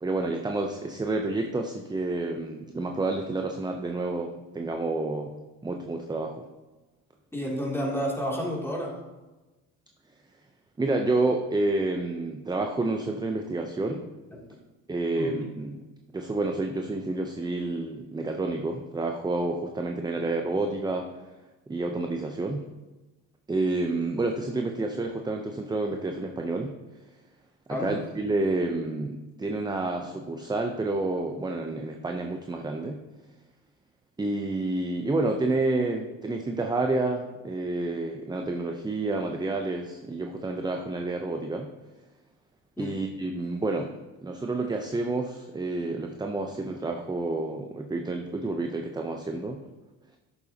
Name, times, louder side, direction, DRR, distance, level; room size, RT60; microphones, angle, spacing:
voice 1, 0.0-5.3 5.6-6.5 10.8-14.0 14.9-15.8 16.1-21.1 21.7-22.6 23.5-26.7 27.7-33.0 34.2-41.7 42.8-43.9 44.2-49.6, right 2 dB, 10° right, 3 dB, 0.7 m, -29 dB
voice 2, 7.3-9.0 14.3-14.4 15.1-15.5 20.1-20.3 27.7-27.9 42.8-43.0, equal, 5° left, -3 dB, 2.8 m, -31 dB
11.5 x 6.9 x 2.9 m, 1.1 s
supercardioid pair, 85°, 39 cm